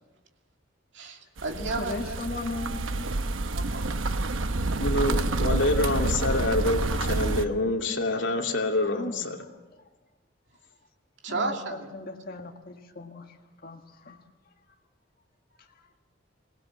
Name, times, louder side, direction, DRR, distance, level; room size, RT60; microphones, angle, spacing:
voice 1, 0.9-2.2 3.5-4.6 5.4-5.6 11.2-11.9, right 3 dB, 65° right, 2 dB, 2.7 m, -34 dB
sound 1, 1.4-7.5, right 2 dB, 90° right, 1.0 m, -28 dB
voice 2, 1.6-3.1 8.8-9.3 11.3-13.4 13.6-14.2 15.8-15.9, left 2 dB, 50° left, 2 dB, 1.8 m, -37 dB
voice 3, 4.8-9.4, left 2 dB, 70° left, 1 dB, 2.7 m, -26 dB
22.5 x 18.5 x 7.5 m, 1.2 s
head